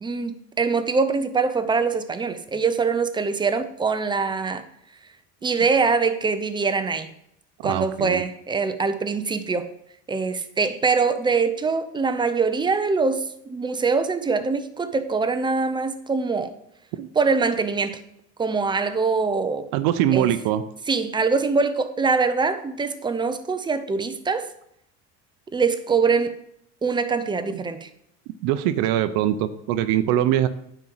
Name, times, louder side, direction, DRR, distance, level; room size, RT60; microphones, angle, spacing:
voice 1, 0.0-4.6 5.4-7.1 7.6-9.7 10.1-16.5 17.1-18.0 18.4-19.7 20.1-20.3 20.9-24.5 25.5-26.3 26.8-27.9, right 4 dB, 15° right, 10 dB, 0.6 m, -23 dB
voice 2, 7.6-8.2 16.9-17.1 19.7-20.6 28.4-30.5, right 12 dB, 75° right, 11 dB, 0.8 m, -22 dB
9.6 x 4.5 x 7.7 m, 0.76 s
cardioid pair, 150°, 36 cm